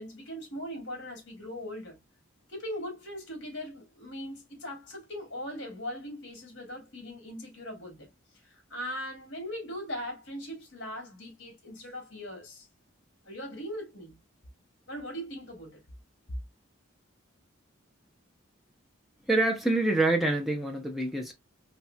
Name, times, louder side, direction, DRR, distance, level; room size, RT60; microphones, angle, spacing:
voice 1, 0.0-2.0 2.5-8.1 8.4-12.7 13.2-14.2 14.9-15.8, equal, 55° left, 2.4 m, -40 dB
voice 2, 19.3-21.3, right 2 dB, ahead, 0.7 m, -26 dB
4.2 x 3.3 x 2.2 m
head